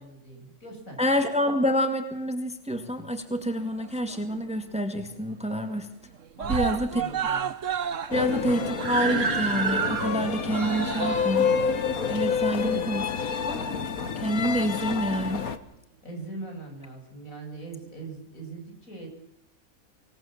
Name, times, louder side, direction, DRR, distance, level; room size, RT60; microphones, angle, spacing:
voice 1, 0.0-1.0 6.4-7.5 12.5-13.0 16.0-19.1, right 2 dB, 70° left, 2 dB, 7.6 m, -41 dB
voice 2, 1.0-5.9 6.5-6.9 8.1-11.5 12.1-13.0 13.4-13.7 14.2-15.5, equal, 5° right, 7 dB, 2.1 m, -27 dB
Screaming, 3.5-4.4 4.8-4.9 5.2-5.3 5.6-6.1 6.4-13.2 14.0-14.1, right 7 dB, 60° right, 1.4 m, -31 dB
sound 1, 8.1-15.6, left 6 dB, 85° left, 1.9 m, -28 dB
26.0 x 18.0 x 7.4 m, 0.75 s
omnidirectional pair, 1.5 m